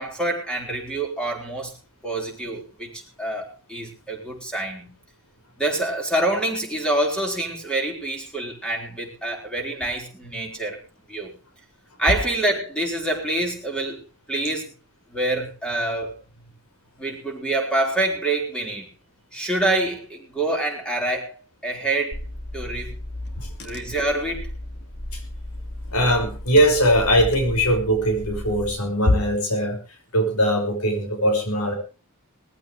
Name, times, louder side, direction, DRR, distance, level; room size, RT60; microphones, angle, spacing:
voice 1, 0.0-1.7 2.0-4.9 5.6-10.8 11.1-11.3 12.0-14.0 14.3-14.7 15.1-16.1 17.0-18.9 19.3-21.4 21.6-22.2 22.5-23.0 23.6-24.5, right 2 dB, 5° left, 1 dB, 4.7 m, -26 dB
Car / Engine, 22.1-28.7, left 1 dB, 50° left, 2.4 m, -35 dB
voice 2, 25.9-29.8 30.1-31.7, equal, 90° left, 5 dB, 5.8 m, -20 dB
19.5 x 15.0 x 3.3 m, 0.33 s
head